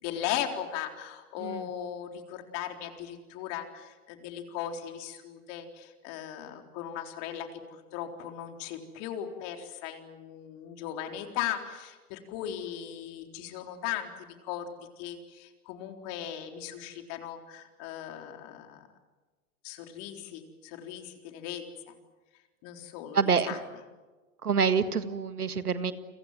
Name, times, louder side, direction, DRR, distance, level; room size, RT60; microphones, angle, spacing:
voice 1, 0.0-14.1 14.4-14.7 15.0-18.8 19.6-22.0 22.6-23.2 23.5-23.6, left 10 dB, 45° left, 5 dB, 4.0 m, -38 dB
voice 2, 23.1-23.6 24.4-25.9, right 6 dB, 85° right, 12 dB, 1.8 m, -27 dB
30.0 x 24.5 x 7.6 m, 1.3 s
hypercardioid pair, 105°, 44 cm